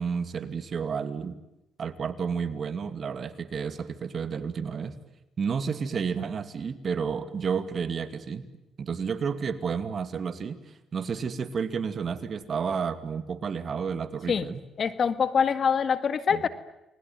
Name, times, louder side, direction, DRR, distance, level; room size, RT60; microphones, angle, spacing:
voice 1, 0.0-1.4 1.8-5.0 5.4-8.5 8.8-14.6 16.3-16.5, right 6 dB, 50° right, 10 dB, 2.6 m, -31 dB
voice 2, 14.8-16.5, left 6 dB, 50° left, 12 dB, 1.8 m, -24 dB
29.5 x 21.5 x 9.4 m, 0.92 s
cardioid pair, 90°, 0 cm